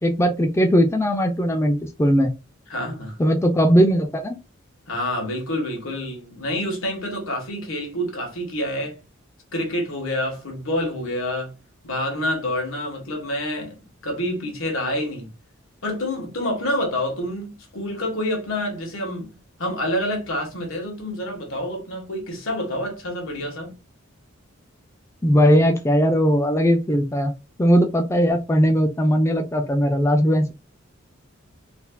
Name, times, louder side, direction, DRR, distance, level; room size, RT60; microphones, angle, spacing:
voice 1, 0.0-2.3 3.2-4.4 25.2-27.3 27.6-30.5, equal, 15° left, 0.4 m, -19 dB
voice 2, 2.7-3.2 4.9-9.0 9.5-11.5 11.8-13.8 14.0-15.3 15.8-23.7, left 1 dB, 80° left, 1.4 m, -27 dB
4.1 x 2.7 x 2.3 m
head